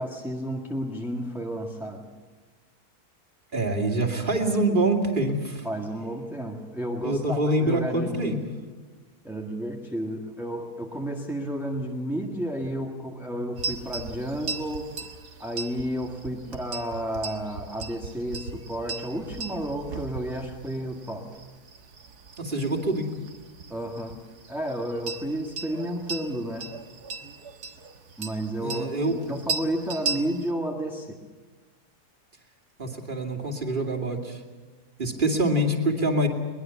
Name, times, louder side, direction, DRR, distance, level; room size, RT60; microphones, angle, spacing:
voice 1, 0.0-2.1 5.6-8.4 9.2-14.9 15.4-21.3 23.7-24.2 24.5-26.7 28.2-31.2, right 1 dB, ahead, -1 dB, 1.7 m, -32 dB
voice 2, 3.5-5.7 7.0-8.4 22.4-23.1 28.6-29.1 32.8-34.4 35.0-36.3, right 1 dB, 30° right, 2 dB, 2.7 m, -25 dB
sound 1, 13.6-30.5, right 4 dB, 75° right, 2.0 m, -38 dB
22.5 x 21.0 x 7.2 m, 1.4 s
omnidirectional pair, 1.7 m